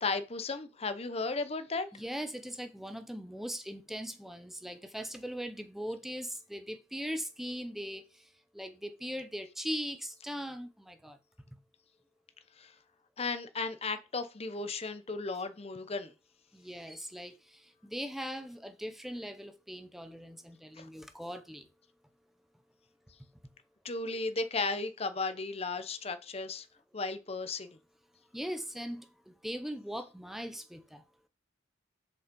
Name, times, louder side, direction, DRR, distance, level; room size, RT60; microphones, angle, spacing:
voice 1, 0.0-1.9 12.6-12.7 13.2-16.1 20.8-20.9 23.8-26.7 26.9-27.8, left 3 dB, 30° left, 0.8 m, -35 dB
voice 2, 1.9-11.2 11.5-11.6 16.5-21.7 28.3-31.0, equal, ahead, 0.7 m, -40 dB
6.9 x 5.4 x 5.3 m
head